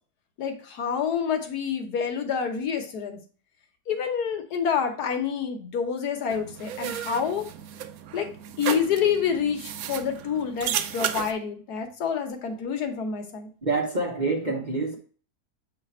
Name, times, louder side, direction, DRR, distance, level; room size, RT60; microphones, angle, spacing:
voice 1, 0.4-3.2 3.9-7.5 8.1-8.3 8.6-13.5, left 7 dB, 75° left, 5 dB, 1.5 m, -28 dB
sound 1, 6.3-11.3, right 9 dB, 70° right, 1.0 m, -33 dB
voice 2, 13.6-15.0, right 3 dB, 35° right, 0 dB, 0.9 m, -26 dB
7.6 x 3.3 x 4.2 m, 0.41 s
omnidirectional pair, 1.7 m